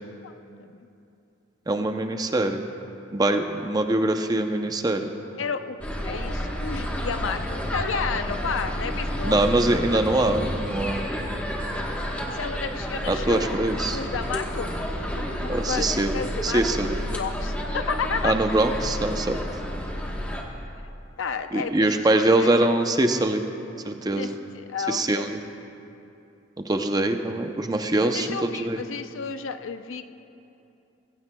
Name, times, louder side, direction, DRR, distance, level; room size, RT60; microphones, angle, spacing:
voice 1, 0.2-0.9 5.4-9.4 9.9-10.0 12.2-14.7 15.1-18.3 21.2-22.7 24.2-25.3 28.0-30.1, left 5 dB, 80° left, 9 dB, 0.6 m, -32 dB
voice 2, 1.7-2.6 3.1-5.1 9.2-11.1 13.1-14.0 15.5-16.9 18.2-19.4 21.5-23.4 23.8-24.3 24.9-25.4 26.6-28.8, right 2 dB, 20° right, 6 dB, 0.6 m, -23 dB
sound 1, 5.8-20.4, equal, 5° left, 1.1 m, -30 dB
23.0 x 15.5 x 2.3 m, 2.8 s
head